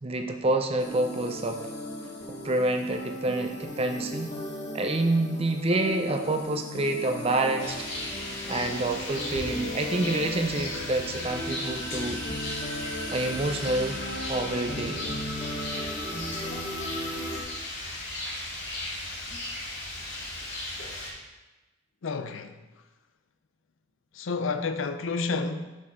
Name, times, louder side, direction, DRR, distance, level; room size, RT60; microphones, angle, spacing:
voice 1, 0.0-1.6 2.3-4.3 4.7-7.9 8.5-12.2 13.1-14.0 14.3-15.1, right 2 dB, 30° right, 0.6 m, -27 dB
sound 1, 0.8-17.4, left 1 dB, 35° left, 1.2 m, -37 dB
Rain, 7.6-21.1, left 1 dB, 65° left, 2.2 m, -36 dB
voice 2, 22.0-22.6 24.1-25.8, left 4 dB, 85° left, 0.5 m, -30 dB
6.7 x 6.2 x 3.7 m
head